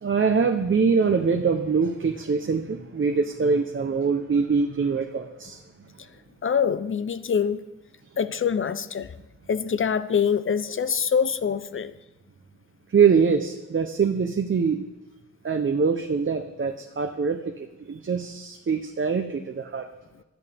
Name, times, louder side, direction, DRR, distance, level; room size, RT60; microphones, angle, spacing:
voice 1, 0.0-5.6 12.9-14.8 15.4-19.9, right 5 dB, 45° right, 4 dB, 0.9 m, -23 dB
voice 2, 6.4-7.6 8.2-9.1 9.5-11.9, left 7 dB, 45° left, 14 dB, 0.6 m, -24 dB
19.5 x 13.0 x 3.5 m, 1.0 s
wide cardioid pair, 115°, 29 cm